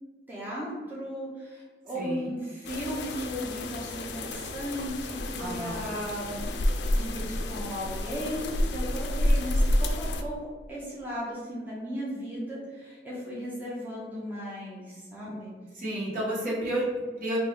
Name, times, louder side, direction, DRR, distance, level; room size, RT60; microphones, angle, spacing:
voice 1, 0.3-6.5 6.9-10.4 10.7-15.5, equal, 10° right, -7 dB, 0.7 m, -36 dB
voice 2, 1.9-2.3 5.4-5.9 15.7-17.4, right 1 dB, 50° right, -6 dB, 1.3 m, -31 dB
sound 1, 2.6-10.2, left 1 dB, 70° left, 0.4 m, -29 dB
3.2 x 2.5 x 3.7 m, 1.4 s
head